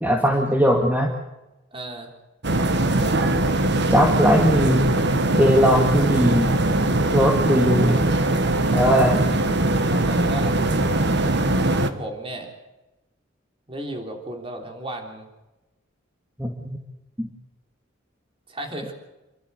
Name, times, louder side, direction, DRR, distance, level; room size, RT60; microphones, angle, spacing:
voice 1, 0.0-1.1 3.9-4.9 5.3-6.5 7.1-8.0 8.7-9.3 16.4-16.8 17.2-17.3, equal, 10° right, 1 dB, 2.0 m, -19 dB
voice 2, 1.7-2.1 9.9-10.7 11.5-12.5 13.7-15.3 18.5-18.9, right 1 dB, 30° right, 3 dB, 3.5 m, -35 dB
sound 1, 2.4-11.9, right 2 dB, 60° right, 1.5 m, -21 dB
28.5 x 12.5 x 8.2 m, 1.0 s
head